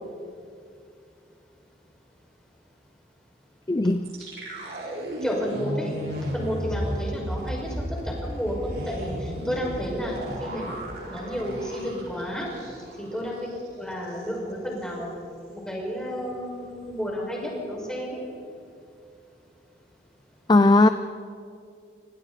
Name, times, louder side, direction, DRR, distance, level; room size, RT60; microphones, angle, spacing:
voice 1, 3.7-4.1 20.5-20.9, left 2 dB, 25° left, 10 dB, 0.4 m, -17 dB
sound 1, 4.0-13.1 13.4-13.5 13.9-14.3, equal, 60° right, 4.7 m, -34 dB
voice 2, 5.2-5.9 6.3-12.5 13.0-13.5 13.8-15.1 15.5-18.2, equal, 5° left, -3 dB, 5.6 m, -31 dB
27.5 x 25.5 x 4.2 m, 2.4 s
head